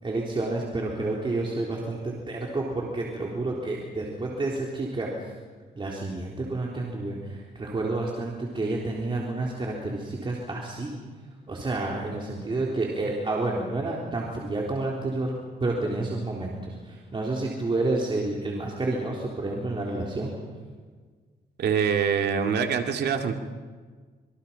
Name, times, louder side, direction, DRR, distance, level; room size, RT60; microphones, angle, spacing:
voice 1, 0.0-5.3 5.7-11.0 11.5-20.3, right 2 dB, 30° right, -2 dB, 3.6 m, -30 dB
voice 2, 21.6-23.3, right 6 dB, 75° right, 4 dB, 2.4 m, -24 dB
26.5 x 23.5 x 5.8 m, 1.5 s
cardioid pair, 110°, 17 cm